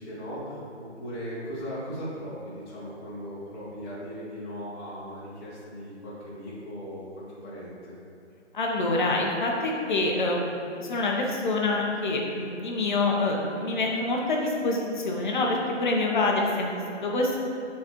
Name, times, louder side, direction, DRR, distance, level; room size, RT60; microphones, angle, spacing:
voice 1, 0.0-7.9, equal, 20° left, -10 dB, 1.5 m, -38 dB
voice 2, 8.5-17.4, left 2 dB, 40° left, -1 dB, 1.0 m, -26 dB
8.4 x 4.2 x 3.1 m, 2.5 s
figure-of-eight pair, 150°, 36 cm